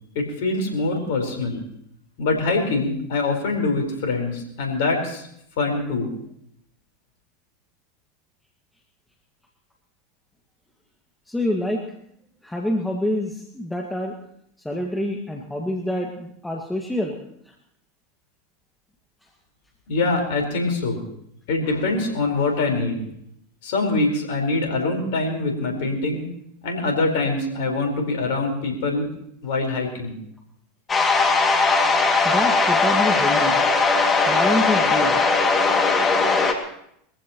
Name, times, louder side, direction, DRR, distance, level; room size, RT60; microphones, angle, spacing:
voice 1, 0.1-1.6 2.2-5.3 5.6-6.1 19.9-21.0 21.5-23.0 23.6-26.3 26.6-29.1 29.4-30.2, left 3 dB, 65° left, 2 dB, 4.5 m, -24 dB
voice 2, 11.3-11.8 12.4-14.1 14.6-17.2 17.5-17.6 32.2-33.6 34.3-35.2, left 1 dB, 5° left, 0 dB, 1.9 m, -26 dB
sound 1, 30.9-36.5, left 4 dB, 25° left, 2.3 m, -19 dB
22.5 x 15.0 x 3.0 m, 0.72 s
hypercardioid pair, 85°, 0 cm